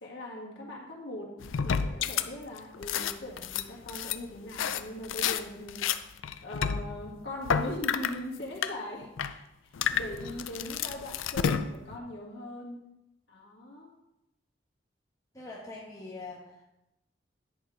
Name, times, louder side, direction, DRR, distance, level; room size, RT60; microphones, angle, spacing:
voice 1, 0.0-1.3 1.6-5.9 6.4-12.8 13.3-13.9, left 1 dB, 65° left, -3 dB, 2.1 m, -40 dB
sound 1, 1.4-2.3 2.6-5.4 5.7-8.2 8.6-8.7 9.0-9.3 9.7-12.0, left 7 dB, 90° left, 0.4 m, -30 dB
voice 2, 15.3-16.6, left 3 dB, 15° left, -4 dB, 1.2 m, -43 dB
10.5 x 4.6 x 5.1 m, 0.90 s
head